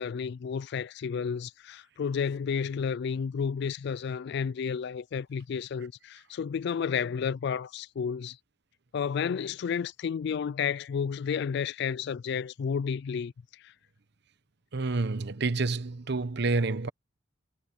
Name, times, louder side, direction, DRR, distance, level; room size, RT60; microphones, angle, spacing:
voice 1, 0.0-8.4 8.9-13.7, left 6 dB, 60° left, 0.3 m, -31 dB
voice 2, 14.7-16.9, right 3 dB, 60° right, 0.9 m, -28 dB
head